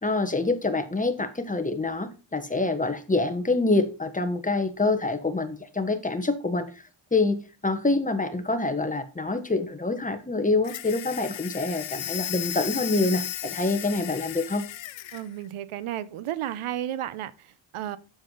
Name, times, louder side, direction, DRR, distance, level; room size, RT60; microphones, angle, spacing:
voice 1, 0.0-6.7 7.1-14.7, left 3 dB, 15° left, 1.2 m, -26 dB
sound 1, 10.6-15.2, left 13 dB, 65° left, 0.7 m, -35 dB
voice 2, 15.1-18.0, right 12 dB, 90° right, 0.8 m, -33 dB
8.8 x 7.3 x 3.9 m
cardioid pair, 90°, 49 cm